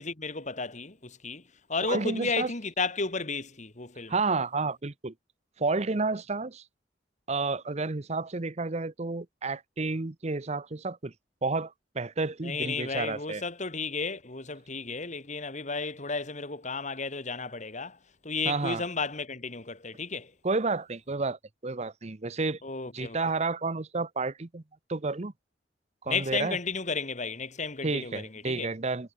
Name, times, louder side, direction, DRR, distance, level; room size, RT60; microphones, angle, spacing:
voice 1, 0.0-1.4 1.7-4.1 12.4-18.0 18.2-20.3 22.6-23.2 26.1-28.7, left 4 dB, 40° left, 2.0 m, -33 dB
voice 2, 1.9-2.5 4.1-5.1 5.6-6.6 7.3-11.1 11.4-13.4 18.5-18.8 20.4-22.6 22.9-24.6 24.9-25.3 26.0-26.6 27.8-29.1, right 3 dB, 35° right, 0.8 m, -31 dB
head